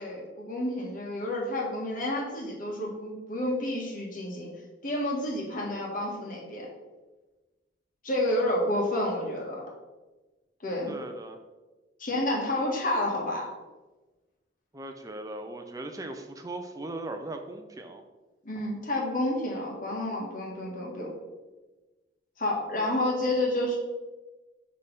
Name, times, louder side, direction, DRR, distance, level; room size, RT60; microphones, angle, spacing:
voice 1, 0.0-4.5 4.8-6.7 8.0-9.6 10.6-10.9 12.0-13.5 18.5-21.1 22.4-23.8, left 1 dB, 45° left, -2 dB, 1.6 m, -30 dB
voice 2, 10.9-11.4 14.7-18.0, right 2 dB, 20° right, 5 dB, 0.4 m, -38 dB
6.7 x 3.3 x 5.3 m, 1.2 s
head